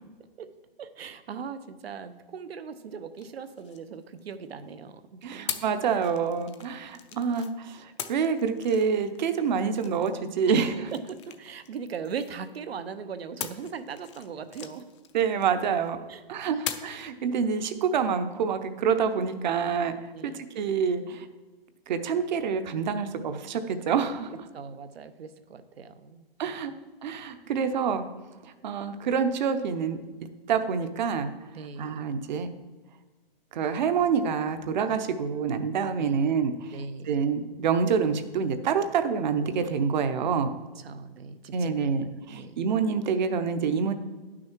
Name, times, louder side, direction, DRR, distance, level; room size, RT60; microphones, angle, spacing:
voice 1, 0.8-5.6 10.5-10.6 10.9-14.9 16.1-16.2 16.5-16.6 20.1-20.6 24.5-26.3 31.5-32.0 36.0-36.3 36.7-37.1 40.8-41.8 42.3-42.6, right 6 dB, 80° right, 11 dB, 0.9 m, -39 dB
sound 1, 3.2-4.6 5.5-7.5 8.0-12.7 13.4-15.9 16.7-17.1, left 9 dB, 30° left, 0.5 m, -41 dB
voice 2, 5.2-10.7 15.1-16.0 16.3-20.0 20.2-21.3 21.9-24.3 26.4-26.7 27.0-28.0 28.4-30.0 30.5-31.3 31.8-32.5 33.5-36.8 37.0-40.5 41.5-43.9, right 6 dB, 50° right, 9 dB, 0.8 m, -27 dB
10.5 x 6.2 x 4.6 m, 1.3 s
hypercardioid pair, 150°, 30 cm